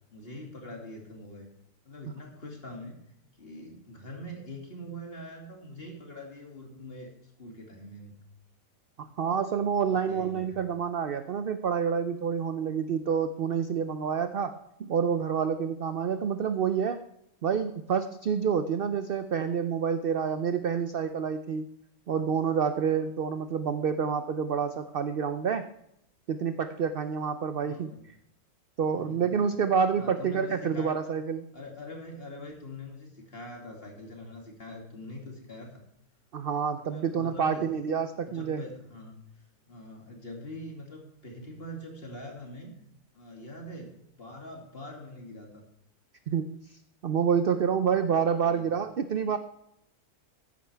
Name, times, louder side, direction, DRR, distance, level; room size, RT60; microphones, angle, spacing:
voice 1, 0.1-1.5 1.8-3.0 3.4-8.2 9.0-9.1 9.9-10.6 27.6-28.1 28.9-29.4 30.0-31.2 31.5-35.8 36.7-37.7 38.2-42.8 43.1-43.9 44.2-45.6 48.1-48.2 48.4-48.7, left 1 dB, 40° left, 0 dB, 2.7 m, -44 dB
voice 2, 9.0-17.0 17.4-21.7 22.1-25.7 26.3-27.9 28.8-31.4 36.3-38.6 46.3-46.5 47.0-49.4, right 7 dB, 60° right, 10 dB, 0.6 m, -28 dB
14.0 x 10.5 x 3.4 m, 0.79 s
omnidirectional pair, 1.5 m